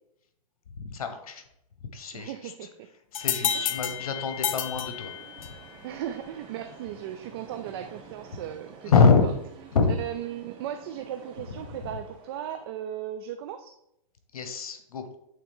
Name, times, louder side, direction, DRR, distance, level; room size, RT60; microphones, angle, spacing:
voice 1, 0.8-1.4 1.9-2.5 3.1-5.1 5.4-5.5 8.9-9.2 9.7-9.9 14.3-15.0, left 5 dB, 85° left, 7 dB, 1.1 m, -25 dB
voice 2, 2.1-2.9 3.5-3.7 5.8-9.3 10.0-13.7, right 10 dB, 45° right, 8 dB, 0.4 m, -37 dB
sound 1, 3.1-5.7, left 9 dB, 65° left, 0.7 m, -30 dB
sound 2, 3.4-12.7, right 5 dB, 30° right, 1.0 m, -50 dB
8.4 x 3.7 x 3.6 m, 0.81 s
hypercardioid pair, 150°, 18 cm